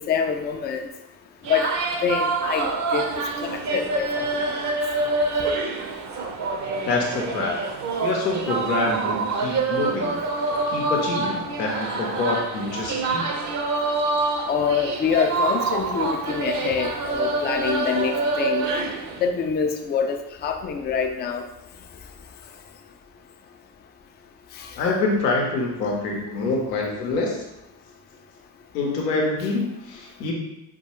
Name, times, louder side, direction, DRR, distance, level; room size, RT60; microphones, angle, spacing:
voice 1, 0.1-0.9 1.5-1.7 2.0-3.1 3.4-4.2 14.5-18.6 19.2-21.4 26.3-26.4, left 6 dB, 25° left, 5 dB, 0.4 m, -25 dB
sound 1, 1.4-19.3, right 3 dB, 40° right, 0.6 m, -26 dB
voice 2, 6.9-7.6 8.0-13.3 24.7-27.4 28.7-30.3, left 3 dB, 85° left, 0 dB, 0.7 m, -26 dB
4.5 x 2.3 x 2.9 m, 0.92 s
hypercardioid pair, 50°, 47 cm